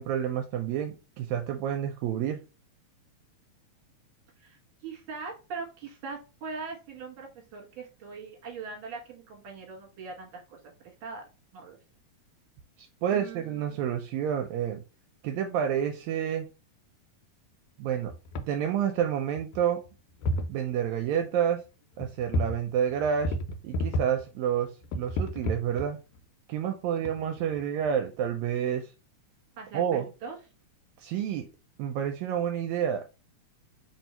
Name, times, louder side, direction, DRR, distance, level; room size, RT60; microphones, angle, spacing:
voice 1, 0.0-2.4 13.0-14.8 15.2-16.5 17.8-18.1 18.5-19.8 20.5-21.6 22.0-23.4 23.6-26.0 26.5-28.9 29.7-30.0 31.0-31.5 31.8-33.0, right 9 dB, 80° right, 5 dB, 1.8 m, -29 dB
voice 2, 4.4-11.8 13.1-13.9 29.6-30.4, right 4 dB, 50° right, 0 dB, 2.0 m, -41 dB
sound 1, 18.1-18.5 19.0-19.1 19.4-19.9 20.2-20.6 22.0-22.6 22.9-24.2 24.8-26.2 27.0-27.9, equal, 80° left, 2.0 m, -31 dB
4.4 x 2.7 x 4.3 m, 0.30 s
omnidirectional pair, 3.3 m